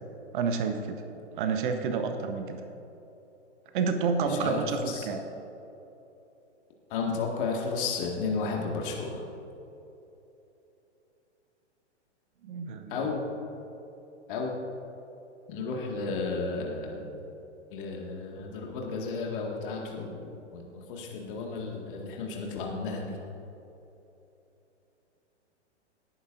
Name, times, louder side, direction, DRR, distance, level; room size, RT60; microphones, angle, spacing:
voice 1, 0.3-1.0 1.4-2.6 3.7-5.2 12.4-13.1, right 5 dB, 45° right, 6 dB, 1.0 m, -29 dB
voice 2, 4.3-5.1 6.9-9.2 12.9-13.3 14.3-14.6 15.5-17.1 17.7-23.2, left 4 dB, 45° left, -1 dB, 2.0 m, -33 dB
18.5 x 9.0 x 2.6 m, 3.0 s
figure-of-eight pair, 115°, 35 cm